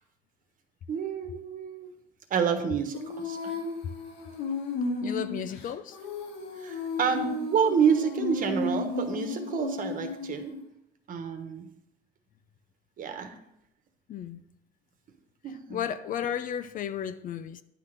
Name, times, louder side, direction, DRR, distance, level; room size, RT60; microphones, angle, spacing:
voice 1, 0.9-1.9 2.3-3.5 6.6-10.5 11.1-11.7 13.0-13.4 15.4-15.8, right 7 dB, 55° right, 1.2 m, -28 dB
Female singing, 2.9-10.6, left 3 dB, 85° left, 2.0 m, -34 dB
voice 2, 5.0-6.0 14.1-14.4 15.7-17.6, left 9 dB, 55° left, 0.5 m, -33 dB
10.0 x 3.8 x 6.6 m
cardioid pair, 110°, 17 cm